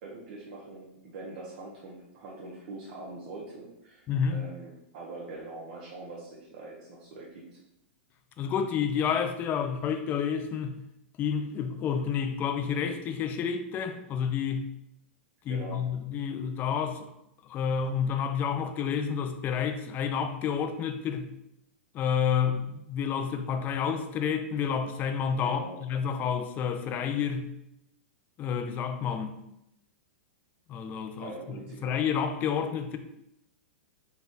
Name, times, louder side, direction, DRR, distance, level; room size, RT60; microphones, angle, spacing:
voice 1, 0.0-7.6 15.5-15.9 25.4-25.8 31.2-32.0, right 2 dB, 50° right, 0.9 m, -43 dB
voice 2, 4.1-4.4 8.4-10.8 11.2-14.7 15.5-17.1 17.5-21.3 21.9-27.5 28.4-29.4 30.7-33.0, left 7 dB, 25° left, 0.4 m, -29 dB
4.0 x 2.3 x 3.9 m
hypercardioid pair, 135°, 7 cm